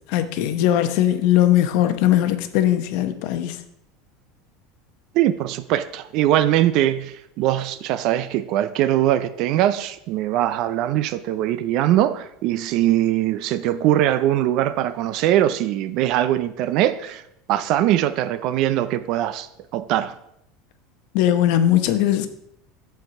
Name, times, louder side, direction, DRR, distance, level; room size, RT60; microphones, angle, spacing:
voice 1, 0.1-3.6 21.1-22.3, left 12 dB, 60° left, 0.8 m, -19 dB
voice 2, 5.1-17.2 17.5-20.1, right 12 dB, 50° right, 0.4 m, -21 dB
7.7 x 4.7 x 5.7 m
supercardioid pair, 145°, 0 cm